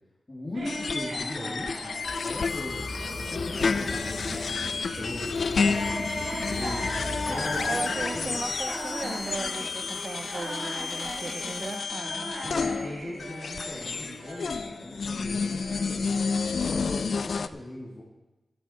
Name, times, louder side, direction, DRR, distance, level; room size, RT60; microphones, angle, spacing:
voice 1, 0.3-2.9 3.2-8.5 12.4-18.0, left 1 dB, 30° left, -6 dB, 2.7 m, -39 dB
sound 1, 0.5-16.9, equal, 90° right, 5.3 m, -39 dB
sound 2, 0.7-17.5, left 5 dB, 75° left, 0.5 m, -31 dB
sound 3, 2.0-11.8, left 3 dB, 45° left, 1.0 m, -39 dB
voice 2, 7.7-12.3, right 3 dB, 45° right, 11 dB, 0.6 m, -37 dB
13.0 x 11.5 x 4.5 m, 1.1 s
wide cardioid pair, 125°, 0 cm